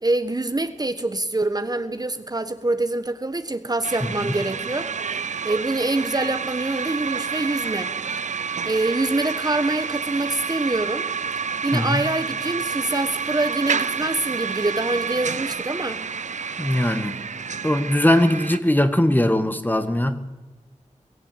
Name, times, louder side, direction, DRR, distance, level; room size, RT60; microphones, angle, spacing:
voice 1, 0.0-4.9 5.4-7.9 8.6-11.1 11.6-16.0, right 2 dB, 30° right, 1.3 m, -25 dB
sound 1, 3.8-18.6, right 6 dB, 75° right, 0.7 m, -29 dB
voice 2, 16.6-17.2 17.6-20.2, left 1 dB, 15° left, 1.7 m, -20 dB
22.0 x 15.0 x 9.1 m
wide cardioid pair, 65°, 13 cm